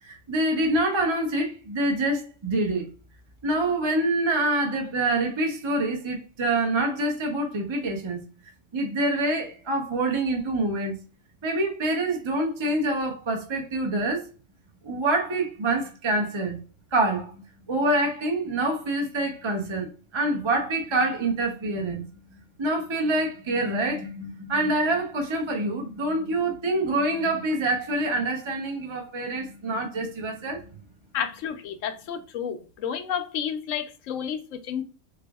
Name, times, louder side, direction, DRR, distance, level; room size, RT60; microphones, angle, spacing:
voice 1, 0.0-2.9 3.4-8.2 8.7-11.0 11.4-14.3 14.8-16.6 16.9-19.9 20.1-30.6, right 2 dB, 30° right, 0.6 m, -26 dB
voice 2, 31.1-34.8, left 8 dB, 80° left, 1.0 m, -31 dB
3.5 x 3.4 x 2.2 m
omnidirectional pair, 1.3 m